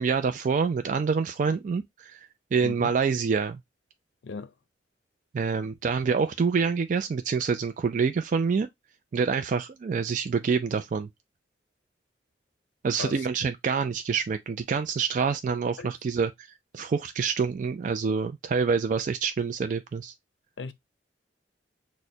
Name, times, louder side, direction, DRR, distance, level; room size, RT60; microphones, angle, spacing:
voice 1, 0.0-2.2 2.5-3.6 5.3-8.7 9.1-11.1 12.8-16.5 16.7-20.1, right 5 dB, 45° right, 0.3 m, -26 dB
voice 2, 2.6-2.9 4.2-4.5 13.0-13.3 15.8-15.9 20.6-20.7, left 4 dB, 75° left, 0.5 m, -37 dB
6.2 x 2.1 x 2.7 m
head